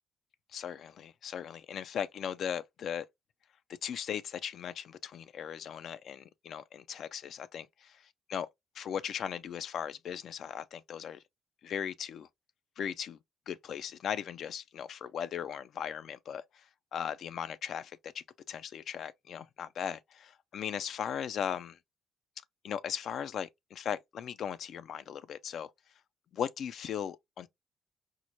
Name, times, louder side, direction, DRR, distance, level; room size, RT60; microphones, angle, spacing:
voice 1, 0.5-3.1 3.8-8.5 8.8-11.2 11.6-12.3 12.8-13.2 13.5-21.8 22.6-25.7 26.3-27.5, left 8 dB, 65° left, 0.3 m, -38 dB
4.5 x 2.1 x 2.6 m
cardioid pair, 80°, 0 cm